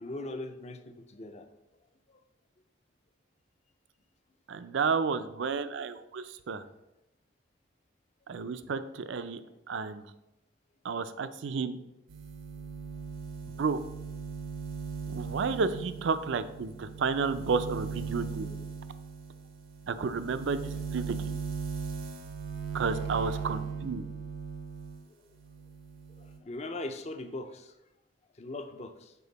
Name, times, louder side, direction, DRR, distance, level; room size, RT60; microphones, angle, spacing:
voice 1, 0.0-1.6 2.1-2.2 6.7-6.8 11.7-11.8 15.3-15.4 18.4-18.6 20.6-20.7 25.2-25.3 26.2-27.7 28.4-29.1, left 2 dB, 35° left, 8 dB, 0.5 m, -41 dB
voice 2, 4.5-6.6 8.3-9.4 9.7-10.0 10.8-11.8 13.6-13.8 15.1-18.5 19.9-21.2 22.7-24.0, right 5 dB, 65° right, 12 dB, 0.4 m, -31 dB
sound 1, 12.1-25.0 25.4-26.4, right 5 dB, 85° right, 0.8 m, -38 dB
6.9 x 4.4 x 4.0 m, 0.90 s
head